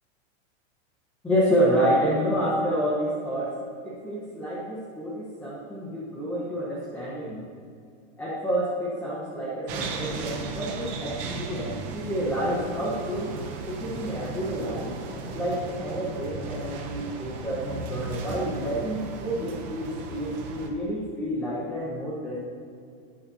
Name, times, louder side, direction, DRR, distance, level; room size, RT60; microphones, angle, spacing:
voice 1, 1.2-3.6 3.8-7.4 8.2-13.4 13.6-14.9 15.3-22.4, equal, 5° left, -8 dB, 1.1 m, -28 dB
sound 1, 9.7-20.7, right 3 dB, 20° right, 0.7 m, -36 dB
20.0 x 7.4 x 2.8 m, 2.4 s
supercardioid pair, 175°, 38 cm